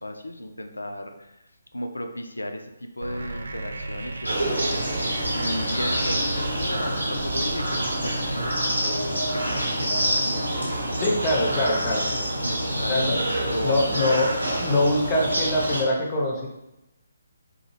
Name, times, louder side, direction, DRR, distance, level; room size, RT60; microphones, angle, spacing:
voice 1, 0.0-1.4 1.7-5.1 5.3-11.1 12.4-14.2, left 1 dB, 75° left, 6 dB, 0.3 m, -35 dB
sound 1, 3.0-8.6, right 2 dB, 65° right, 0.3 m, -35 dB
sound 2, 4.2-15.8, right 1 dB, 85° right, 0.9 m, -26 dB
voice 2, 11.0-12.1 12.8-13.2 13.6-14.3 14.6-16.5, left 1 dB, 20° left, -3 dB, 0.5 m, -23 dB
2.7 x 2.3 x 2.9 m, 0.93 s
figure-of-eight pair, 140°, 0 cm